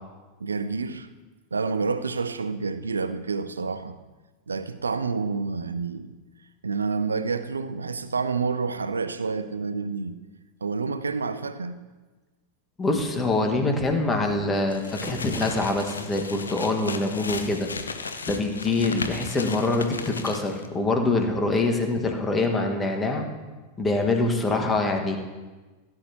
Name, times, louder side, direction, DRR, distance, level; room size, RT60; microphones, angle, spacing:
voice 1, 0.4-1.1 1.5-4.0 4.5-6.1 6.6-10.2 10.6-11.8, right 4 dB, 75° right, 13 dB, 0.6 m, -28 dB
voice 2, 12.8-17.7 18.3-23.2 23.8-25.2, left 2 dB, 15° left, 3 dB, 1.7 m, -25 dB
sound 1, 14.7-20.7, left 4 dB, 75° left, 0.8 m, -35 dB
17.0 x 9.8 x 3.0 m, 1.3 s
figure-of-eight pair, 90°, 0 cm